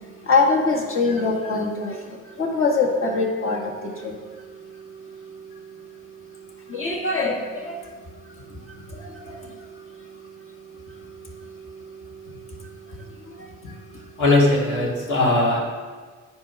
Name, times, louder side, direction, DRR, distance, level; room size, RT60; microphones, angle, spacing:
voice 1, 0.3-2.0 2.4-3.7 4.0-4.1 6.7-7.7 9.2-9.4, left 3 dB, 45° left, -1 dB, 1.9 m, -22 dB
voice 2, 14.2-15.6, left 2 dB, 75° left, -4 dB, 2.8 m, -19 dB
9.9 x 4.7 x 6.0 m, 1.5 s
cardioid pair, 90°, 30 cm